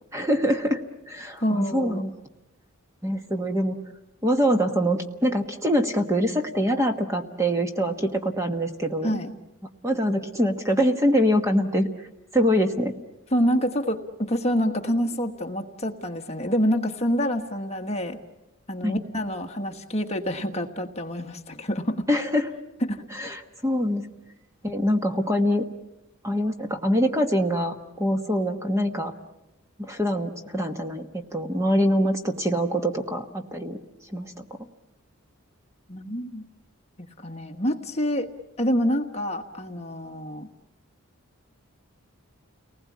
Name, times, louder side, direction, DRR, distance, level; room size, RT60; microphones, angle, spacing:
voice 1, 0.1-2.1 3.0-3.8 4.2-9.1 9.8-12.1 12.3-12.9 18.8-19.0 22.1-22.5 23.2-24.0 24.6-25.7 26.2-29.1 29.8-33.8 34.1-34.6, equal, 15° right, 5 dB, 1.2 m, -24 dB
voice 2, 1.4-2.0 9.0-9.3 13.3-18.2 18.7-22.1 22.8-23.1 35.9-36.5 37.2-38.3 38.6-40.5, equal, 30° left, 4 dB, 1.4 m, -27 dB
30.0 x 20.0 x 8.5 m, 0.98 s
head